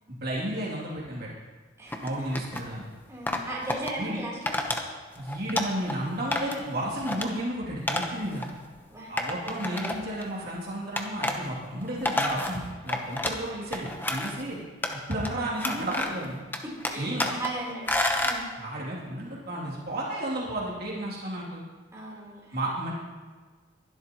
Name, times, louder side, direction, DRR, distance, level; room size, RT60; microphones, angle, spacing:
voice 1, 0.1-1.3 2.0-2.9 4.0-4.2 5.2-8.5 9.1-14.6 15.1-16.4 17.0-17.3 18.6-21.6 22.5-22.9, right 1 dB, 55° right, -6 dB, 2.9 m, -32 dB
sound 1, 1.9-2.7 3.3-3.9 4.5-4.8 5.2-6.0 6.3-6.7 7.0-7.3 7.9-8.1 8.4-8.5 9.2-10.2 11.0-11.4 11.8-13.4 13.7-14.4 14.8-15.3 15.6-16.3 16.5-17.5 17.9-18.4, left 1 dB, 10° left, 1.0 m, -29 dB
voice 2, 3.1-4.5 8.9-9.1 16.6-17.9 18.2-18.5 21.9-22.6, right 1 dB, 15° right, -5 dB, 3.6 m, -36 dB
22.5 x 12.0 x 3.1 m, 1.4 s
head